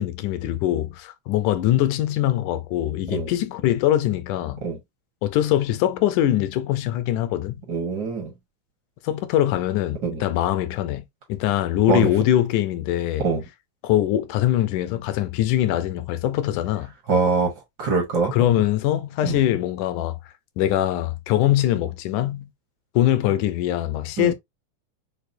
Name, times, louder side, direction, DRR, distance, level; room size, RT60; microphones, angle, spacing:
voice 1, 0.0-4.6 5.2-7.5 9.0-13.3 13.8-16.9 18.3-20.2 20.6-22.5 23.0-24.3, left 13 dB, 80° left, 2.0 m, -22 dB
voice 2, 7.7-8.3 10.0-10.2 11.9-12.1 13.2-13.4 17.1-17.5 17.8-18.3 19.2-19.4 24.2-24.3, right 4 dB, 75° right, 0.9 m, -23 dB
6.7 x 2.2 x 2.6 m
omnidirectional pair, 3.8 m